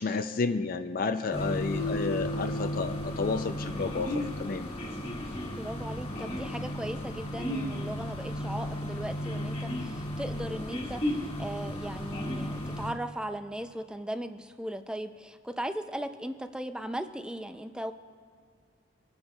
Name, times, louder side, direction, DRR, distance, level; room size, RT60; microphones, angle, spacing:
voice 1, 0.0-4.7, left 4 dB, 50° left, 9 dB, 0.4 m, -31 dB
sound 1, 1.3-12.9, left 1 dB, 30° left, 1.5 m, -34 dB
voice 2, 5.5-11.0 11.4-17.9, right 1 dB, 5° right, 9 dB, 0.4 m, -37 dB
25.5 x 9.5 x 2.3 m, 2.2 s
head